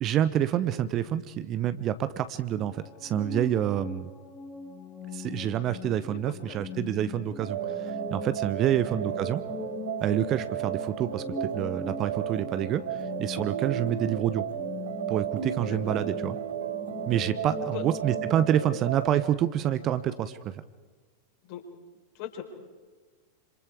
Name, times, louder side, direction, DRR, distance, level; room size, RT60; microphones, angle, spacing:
voice 1, 0.0-4.1 5.1-9.4 10.0-14.4 15.1-16.4 17.1-20.6, right 11 dB, 35° right, 13 dB, 1.0 m, -28 dB
FM pad, 2.5-18.8, left 4 dB, 15° left, 3.6 m, -41 dB
sound 1, 7.4-19.3, right 10 dB, 65° right, 1.8 m, -34 dB
voice 2, 15.7-16.0 17.7-17.8 21.4-21.6 22.1-22.4, left 13 dB, 45° left, 3 dB, 4.5 m, -40 dB
27.0 x 26.5 x 4.8 m, 1.4 s
figure-of-eight pair, 90°, 0 cm